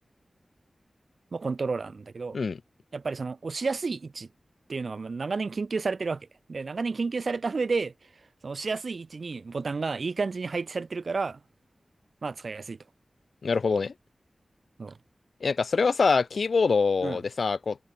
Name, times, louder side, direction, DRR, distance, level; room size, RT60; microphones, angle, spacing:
voice 1, 1.3-2.4 2.9-4.3 4.7-7.9 8.4-11.4 12.2-12.8 14.8-15.0 17.0-17.2, right 4 dB, 70° right, 1.2 m, -31 dB
voice 2, 13.4-13.9 15.4-17.8, left 4 dB, 80° left, 0.6 m, -24 dB
cardioid pair, 45°, 0 cm